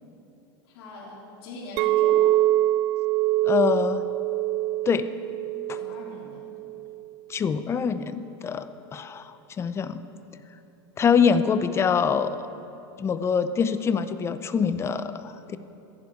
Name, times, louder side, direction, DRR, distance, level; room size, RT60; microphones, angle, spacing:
voice 1, 0.6-2.4 5.7-6.4, left 2 dB, 80° left, -4 dB, 3.3 m, -41 dB
Chink clink, 1.8-7.0, right 15 dB, 50° right, 0.3 m, -24 dB
voice 2, 3.4-4.1 4.9-5.1 7.3-10.0 11.0-12.4 13.0-15.6, left 6 dB, 20° left, 12 dB, 0.5 m, -24 dB
15.0 x 10.5 x 4.6 m, 2.9 s
supercardioid pair, 125°, 13 cm